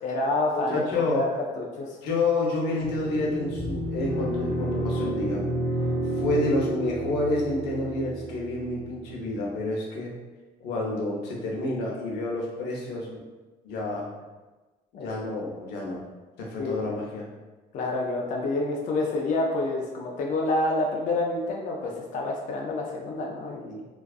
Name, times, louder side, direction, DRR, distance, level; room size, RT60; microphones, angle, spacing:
voice 1, 0.0-1.3 1.6-2.0 14.9-15.0 16.6-16.8 17.7-23.9, left 2 dB, 50° left, -1 dB, 0.4 m, -28 dB
voice 2, 0.5-1.3 2.0-5.4 6.2-10.1 10.6-13.2 13.6-14.1 15.0-16.0 16.4-17.3, left 2 dB, 90° left, -2 dB, 0.7 m, -29 dB
sound 1, 2.8-9.2, right 1 dB, 45° right, 0.5 m, -30 dB
2.4 x 2.3 x 2.3 m, 1.2 s
cardioid pair, 110°, 17 cm